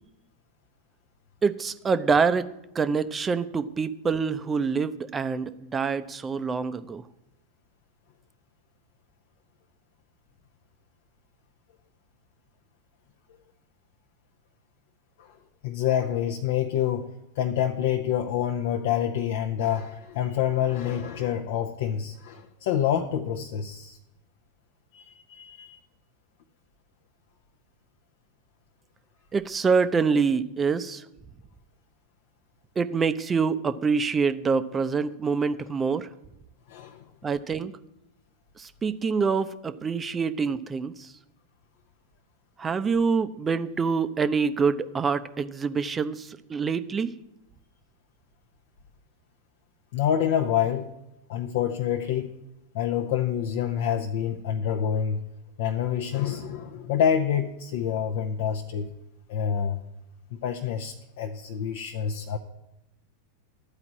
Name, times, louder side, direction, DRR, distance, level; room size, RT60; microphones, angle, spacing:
voice 1, 1.4-2.5 2.7-7.0 29.3-31.1 32.8-36.1 37.2-37.7 38.6-41.1 42.6-47.1, right 5 dB, 20° right, 12 dB, 0.6 m, -26 dB
voice 2, 15.6-17.1 17.4-24.0 24.9-25.8 36.7-37.0 49.9-50.9 51.3-52.3 52.7-55.2 55.6-58.9 59.3-59.8 60.3-62.4, left 9 dB, 50° left, 3 dB, 0.7 m, -27 dB
12.0 x 4.9 x 8.3 m, 0.89 s
figure-of-eight pair, 90°, 0 cm